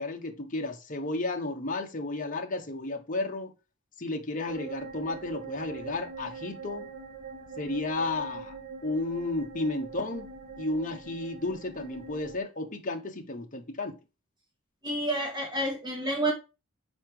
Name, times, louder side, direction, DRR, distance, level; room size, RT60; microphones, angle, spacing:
voice 1, 0.0-3.5 4.0-6.9 7.6-8.5 8.8-10.3 10.6-14.0, left 2 dB, 40° left, 1.2 m, -33 dB
sound 1, 4.5-12.4, right 4 dB, 50° right, 1.7 m, -43 dB
voice 2, 14.8-16.3, right 1 dB, 20° right, 3.0 m, -29 dB
5.8 x 4.6 x 4.9 m
head